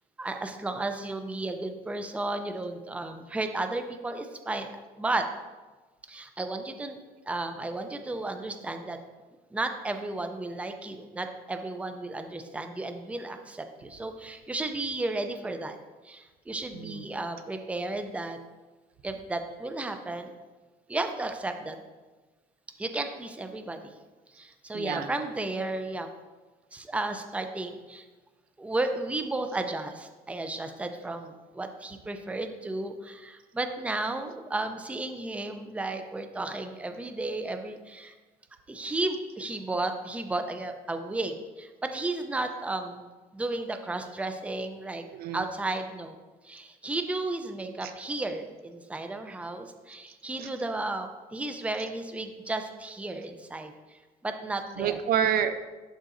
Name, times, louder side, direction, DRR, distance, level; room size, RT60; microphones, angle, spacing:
voice 1, 0.2-5.3 6.1-7.0 7.3-9.0 9.5-15.8 16.0-18.4 19.0-20.3 20.9-21.8 22.8-23.9 24.3-26.1 26.7-28.1 28.6-38.1 38.7-45.0 45.3-46.2 46.4-55.0, right 2 dB, 10° right, 7 dB, 0.5 m, -33 dB
voice 2, 16.7-17.1 24.7-25.2 45.1-45.4 47.8-47.9 50.4-50.5 54.8-55.6, right 9 dB, 60° right, 10 dB, 0.4 m, -28 dB
11.0 x 3.9 x 2.6 m, 1.3 s
cardioid pair, 110°, 17 cm